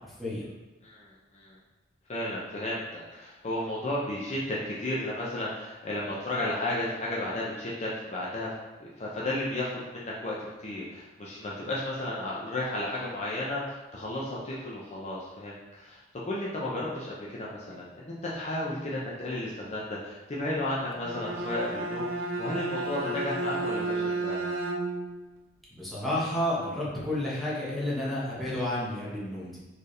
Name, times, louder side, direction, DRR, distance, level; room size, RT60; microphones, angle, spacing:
voice 1, 0.8-1.6 2.1-8.5 8.8-24.5, left 1 dB, 35° left, -6 dB, 0.7 m, -33 dB
Bowed string instrument, 20.9-25.2, right 2 dB, 90° right, 0.5 m, -32 dB
voice 2, 25.7-29.6, left 1 dB, ahead, -9 dB, 1.2 m, -31 dB
4.4 x 3.4 x 3.2 m, 1.1 s
head